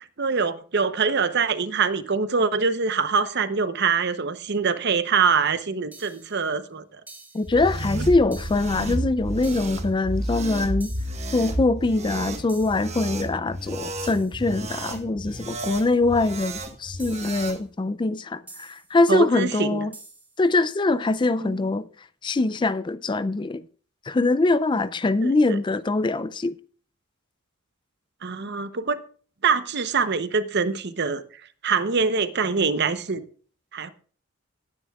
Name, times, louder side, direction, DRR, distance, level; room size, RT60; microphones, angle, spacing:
voice 1, 0.2-6.8 19.1-19.8 21.4-21.6 25.2-25.3 28.2-29.0 29.4-31.2 31.6-33.2 33.7-33.9, right 5 dB, 55° right, 0.8 m, -24 dB
sound 1, 5.9-6.4 7.1-7.6 8.3-8.8 9.4-9.9 10.8-11.3 12.5-13.0 14.0-14.5 15.6-16.1 17.0-17.5 18.5-19.0 19.9-20.4, right 2 dB, 10° right, 2.0 m, -47 dB
voice 2, 7.3-10.9 11.3-19.9 20.4-21.9 22.2-23.6 24.1-26.5, left 2 dB, 20° left, 0.4 m, -23 dB
sound 2, 7.4-17.6, right 1 dB, 30° right, 1.3 m, -32 dB
18.0 x 9.7 x 2.4 m
head